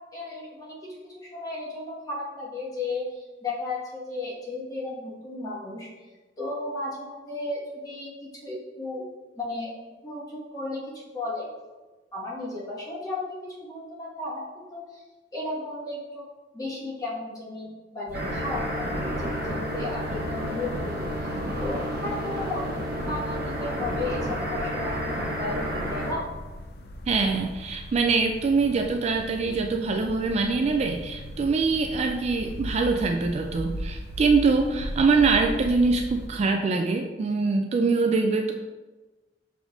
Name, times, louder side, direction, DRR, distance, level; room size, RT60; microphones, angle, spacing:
voice 1, 0.1-5.9 6.4-9.0 9.4-9.7 10.0-11.5 12.1-15.0 15.3-16.3 16.5-26.2, left 2 dB, 20° left, -7 dB, 1.4 m, -34 dB
sound 1, 18.1-36.3, equal, 65° left, 0.4 m, -39 dB
sound 2, 18.1-26.1, equal, 60° right, 0.9 m, -31 dB
voice 2, 27.1-38.5, right 4 dB, 35° right, 3 dB, 0.3 m, -24 dB
6.2 x 3.4 x 2.4 m, 1.2 s
head